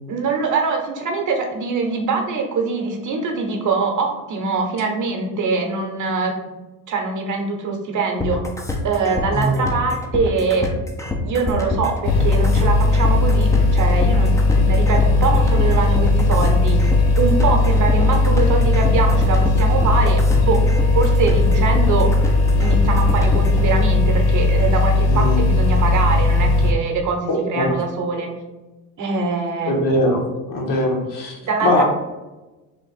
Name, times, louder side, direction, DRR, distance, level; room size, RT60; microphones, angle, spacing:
voice 1, 0.1-6.3 6.9-8.4 8.8-10.7 11.2-16.9 17.2-20.6 20.9-22.1 22.6-28.3 29.0-29.7 31.4-31.8, right 4 dB, 45° right, 3 dB, 0.9 m, -23 dB
sound 1, 8.2-23.6, left 2 dB, 10° left, 0.5 m, -26 dB
voice 2, 9.3-9.6 25.1-25.4 27.3-27.7 29.6-30.2 30.5-31.8, left 1 dB, 50° left, -1 dB, 1.2 m, -21 dB
sound 2, 12.0-26.7, left 2 dB, 90° left, 0.8 m, -17 dB
3.6 x 2.5 x 4.0 m, 1.1 s
supercardioid pair, 80°, 41 cm